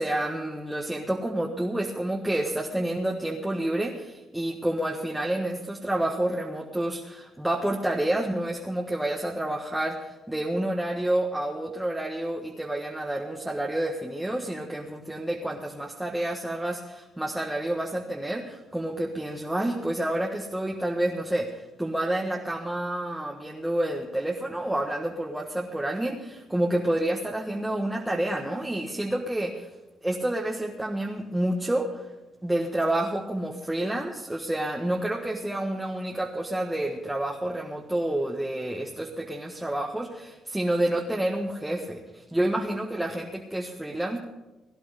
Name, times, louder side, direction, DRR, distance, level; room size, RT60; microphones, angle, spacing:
voice 1, 0.0-29.7 30.0-32.1 32.4-44.2, right 1 dB, 5° right, -1 dB, 1.5 m, -29 dB
17.5 x 11.0 x 5.1 m, 1.1 s
cardioid pair, 90°, 0 cm